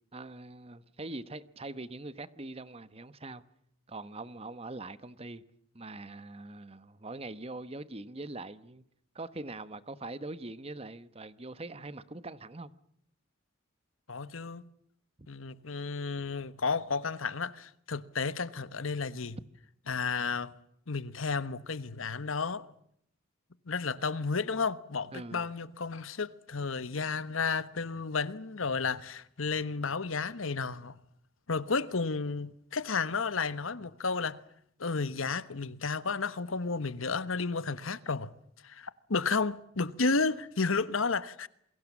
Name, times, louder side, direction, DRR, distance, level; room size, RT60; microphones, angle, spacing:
voice 1, 0.1-3.4 3.9-5.4 5.7-8.8 9.1-12.7 25.1-25.5, right 2 dB, 30° right, 1.1 m, -42 dB
voice 2, 14.1-14.6 15.3-19.4 19.9-20.5 20.9-22.6 23.7-31.0 31.5-34.4 34.8-38.3 38.6-41.5, left 4 dB, 85° left, 1.2 m, -32 dB
28.0 x 23.0 x 7.3 m
head